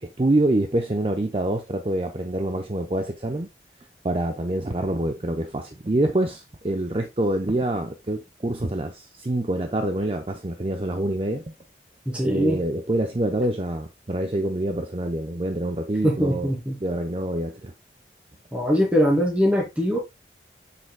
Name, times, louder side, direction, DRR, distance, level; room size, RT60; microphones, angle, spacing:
voice 1, 0.0-3.5 4.0-11.5 12.2-16.5 16.8-17.7, right 1 dB, 30° right, 0.7 m, -26 dB
voice 2, 12.1-12.6 16.0-16.8 18.5-20.0, equal, 5° right, 2.3 m, -22 dB
7.7 x 6.9 x 2.2 m
head